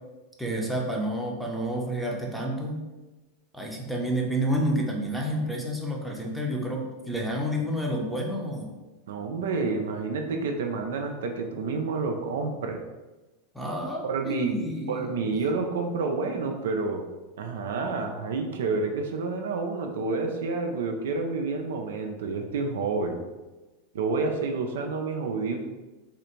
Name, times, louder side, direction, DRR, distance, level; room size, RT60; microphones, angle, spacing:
voice 1, 0.4-2.8 3.5-8.7 13.5-15.1, equal, ahead, -1 dB, 0.7 m, -29 dB
voice 2, 9.1-12.8 14.0-14.6 14.9-17.0 17.4-23.2 23.9-25.6, right 4 dB, 70° right, 4 dB, 0.3 m, -29 dB
3.4 x 2.4 x 3.0 m, 1.2 s
figure-of-eight pair, 90°, 0 cm